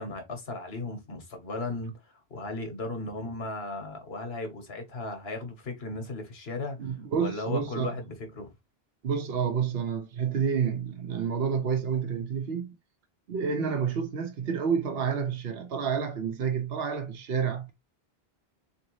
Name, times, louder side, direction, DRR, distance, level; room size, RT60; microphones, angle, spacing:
voice 1, 0.0-8.5, left 2 dB, 70° left, 1.5 m, -36 dB
voice 2, 6.8-8.0 9.0-12.7 13.3-17.7, right 6 dB, 70° right, 1.0 m, -29 dB
3.9 x 3.2 x 3.1 m
omnidirectional pair, 1.1 m